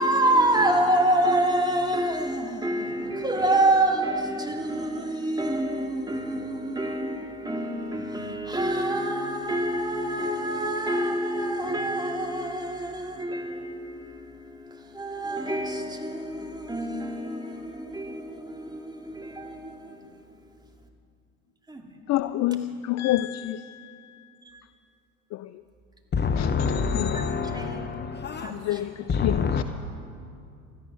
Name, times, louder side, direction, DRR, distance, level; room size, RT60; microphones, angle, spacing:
voice 1, 0.0-20.2 21.7-21.8 27.1-27.2 27.5-27.9 28.4-28.6 28.9-29.0, right 1 dB, 10° right, 2.4 m, -27 dB
voice 2, 22.1-24.3 25.3-25.6 26.4-27.3 28.5-29.6, left 14 dB, 40° left, 0.5 m, -29 dB
voice 3, 26.1-28.7 29.1-29.6, left 5 dB, 25° left, 0.8 m, -27 dB
17.0 x 13.5 x 6.2 m
hypercardioid pair, 70°, 42 cm